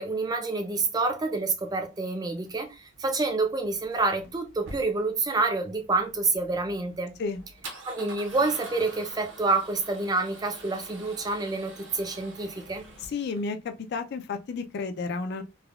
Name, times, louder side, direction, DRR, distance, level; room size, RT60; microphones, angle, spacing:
voice 1, 0.0-7.1 7.9-12.8, right 3 dB, 20° right, 0.4 m, -28 dB
Male speech man speaking / Car / Engine starting, 2.3-13.4, right 2 dB, 60° right, 0.7 m, -46 dB
voice 2, 13.0-15.4, left 4 dB, 55° left, 0.3 m, -32 dB
3.3 x 2.1 x 2.3 m
head